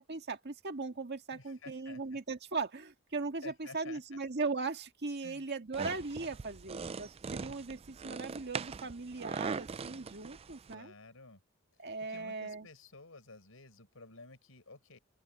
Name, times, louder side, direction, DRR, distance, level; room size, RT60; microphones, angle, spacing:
voice 1, 0.0-10.9 11.8-12.7, right 3 dB, 55° right, 1.8 m, -39 dB
voice 2, 1.3-2.2 3.4-4.2 5.2-5.4 10.7-11.4 12.0-15.0, left 3 dB, 90° left, 4.8 m, -52 dB
sound 1, 5.7-10.7, right 5 dB, 30° right, 0.4 m, -41 dB
open air
head